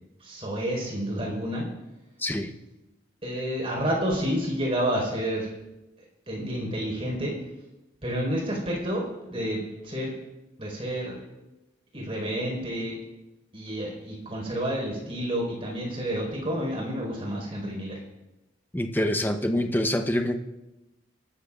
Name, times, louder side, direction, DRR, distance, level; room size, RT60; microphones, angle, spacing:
voice 1, 0.2-1.6 3.2-5.5 6.3-7.3 8.0-10.1 10.6-11.2 11.9-12.9 13.5-18.0, equal, 30° right, -1 dB, 4.8 m, -29 dB
voice 2, 2.2-2.5 18.7-20.4, left 1 dB, 10° left, 6 dB, 0.8 m, -26 dB
26.5 x 13.0 x 2.5 m, 1.0 s
head